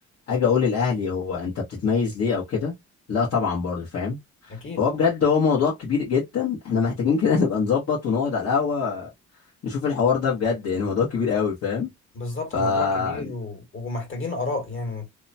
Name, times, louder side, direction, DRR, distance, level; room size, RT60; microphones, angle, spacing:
voice 1, 0.3-2.7 3.1-4.2 4.4-9.1 9.6-11.9 12.5-13.3, left 5 dB, 55° left, 1.2 m, -23 dB
voice 2, 4.5-4.8 12.1-15.1, left 3 dB, 40° left, 1.7 m, -31 dB
2.8 x 2.2 x 2.6 m
cardioid pair, 90°, 30 cm